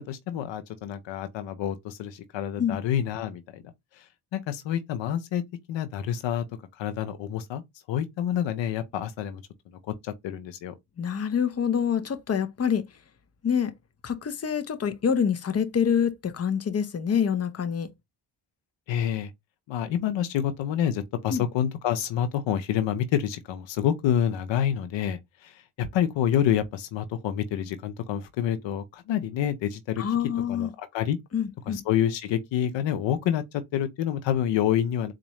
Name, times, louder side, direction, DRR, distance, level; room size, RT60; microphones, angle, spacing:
voice 1, 0.1-4.0 4.3-5.4 5.7-6.4 6.8-7.6 7.9-9.4 10.0-10.7 18.9-19.3 19.7-30.0 30.5-31.2 31.7-35.1, left 10 dB, 85° left, 0.7 m, -28 dB
voice 2, 11.0-12.8 13.4-13.7 14.0-17.9 21.3-21.4 30.0-30.7 31.3-31.8, left 7 dB, 35° left, 0.8 m, -26 dB
4.1 x 2.5 x 3.0 m
cardioid pair, 70°, 43 cm